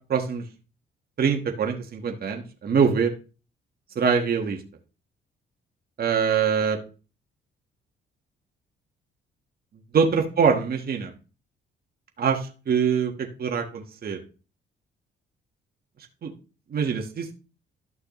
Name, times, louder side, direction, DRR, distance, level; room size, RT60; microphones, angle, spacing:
voice 1, 0.1-0.4 1.2-3.1 3.9-4.6 6.0-6.8 9.9-11.1 12.2-14.2 16.2-16.3 16.7-17.3, right 6 dB, 50° right, 3 dB, 1.4 m, -24 dB
12.0 x 6.3 x 3.1 m, 0.36 s
cardioid pair, 90°, 20 cm